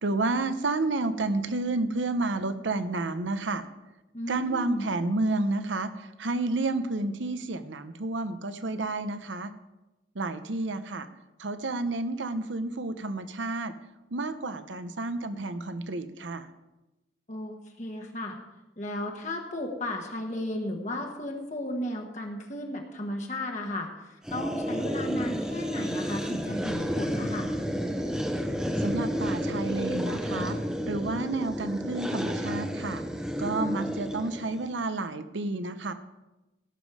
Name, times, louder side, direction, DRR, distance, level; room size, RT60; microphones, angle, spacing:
voice 1, 0.0-3.6 4.3-9.5 10.2-11.1 11.4-13.7 14.1-16.5 28.8-30.6 30.9-33.0 33.4-35.9, right 2 dB, 75° right, 11 dB, 0.8 m, -30 dB
voice 2, 4.1-4.9 17.3-18.4 18.8-27.5, left 1 dB, 40° left, 1 dB, 1.3 m, -34 dB
sound 1, 24.2-34.7, equal, 5° right, 0.9 m, -31 dB
17.0 x 7.3 x 4.9 m, 1.0 s
head